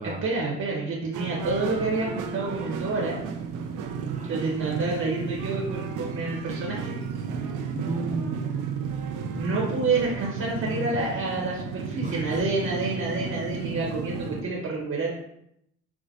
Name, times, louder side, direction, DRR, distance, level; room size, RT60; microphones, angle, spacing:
voice 1, 0.2-3.1 4.2-7.0 9.4-15.1, right 3 dB, 55° right, -3 dB, 1.0 m, -28 dB
sound 1, 1.1-14.4, right 6 dB, 85° right, 0.5 m, -33 dB
voice 2, 4.1-4.4 7.7-9.0 12.0-12.4, right 2 dB, 25° right, 2 dB, 0.4 m, -35 dB
4.9 x 2.1 x 2.6 m, 0.77 s
cardioid pair, 90°, 30 cm